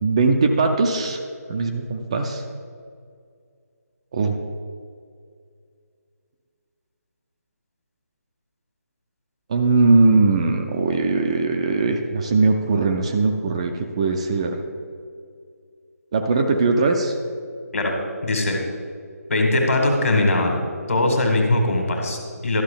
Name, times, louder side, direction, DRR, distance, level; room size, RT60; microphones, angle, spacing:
voice 1, 0.0-1.2 1.5-2.4 4.1-4.4 9.5-14.6 16.1-17.1, right 3 dB, 20° right, 3 dB, 0.4 m, -20 dB
voice 2, 18.2-18.6 19.3-20.5 20.9-22.6, left 2 dB, 55° left, 2 dB, 1.8 m, -20 dB
12.0 x 6.2 x 3.8 m, 2.2 s
figure-of-eight pair, 155°, 9 cm